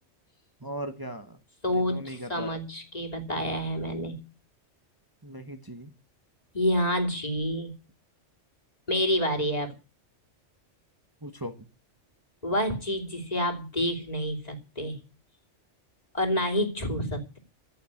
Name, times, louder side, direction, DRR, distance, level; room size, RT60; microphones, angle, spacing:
voice 1, 0.6-1.4 1.7-2.5 5.2-5.9 11.2-11.6, equal, 20° right, 7 dB, 1.2 m, -38 dB
voice 2, 1.6-4.2 6.5-7.7 8.9-9.7 12.4-15.0 16.1-17.4, equal, 35° left, 3 dB, 3.0 m, -28 dB
15.5 x 6.7 x 9.8 m, 0.35 s
omnidirectional pair, 1.2 m